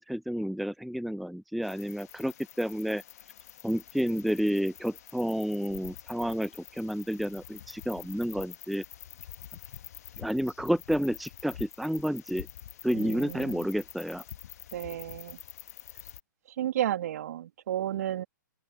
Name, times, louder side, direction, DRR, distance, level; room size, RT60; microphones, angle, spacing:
voice 1, 0.0-3.0 3.6-8.8 10.2-12.5 12.8-14.2, equal, ahead, 0.7 m, -30 dB
sound 1, 1.6-16.2, left 11 dB, 50° left, 1.5 m, -47 dB
voice 2, 12.9-13.7 14.7-15.4 16.5-18.2, right 12 dB, 50° right, 2.1 m, -32 dB
open air
figure-of-eight pair, 125°, 11 cm